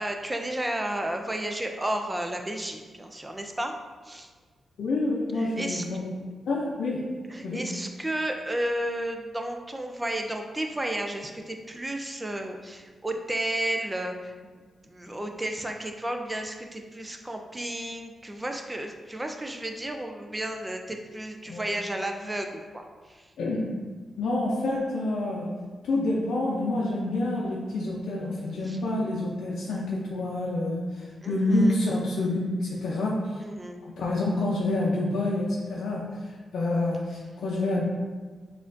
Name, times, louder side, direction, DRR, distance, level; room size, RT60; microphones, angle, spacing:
voice 1, 0.0-3.7 4.0-4.3 5.4-5.8 7.3-23.3 28.6-28.8 31.2-31.8 33.4-33.8, right 1 dB, 10° right, 4 dB, 0.3 m, -33 dB
voice 2, 4.8-6.1 6.5-7.1 7.4-7.6 21.5-21.6 23.4-23.7 24.2-25.5 25.8-33.4 34.0-37.8, left 2 dB, 85° left, -4 dB, 0.5 m, -28 dB
6.3 x 2.4 x 2.6 m, 1.4 s
wide cardioid pair, 160°, 0 cm